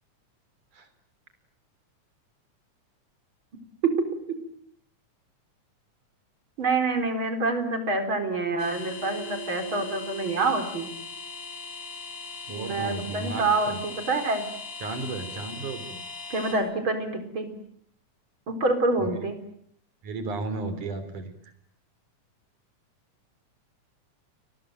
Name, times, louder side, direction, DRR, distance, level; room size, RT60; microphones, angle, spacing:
voice 1, 6.6-10.9 12.5-14.4 16.3-17.5 18.5-19.4, right 3 dB, 40° right, 7 dB, 4.9 m, -26 dB
sound 1, 8.6-16.5, left 3 dB, 30° left, 7.2 m, -39 dB
voice 2, 12.5-13.8 14.8-16.0 19.0-19.1 20.0-21.3, right 3 dB, 80° right, 10 dB, 5.1 m, -34 dB
30.0 x 21.5 x 9.1 m, 0.68 s
omnidirectional pair, 3.5 m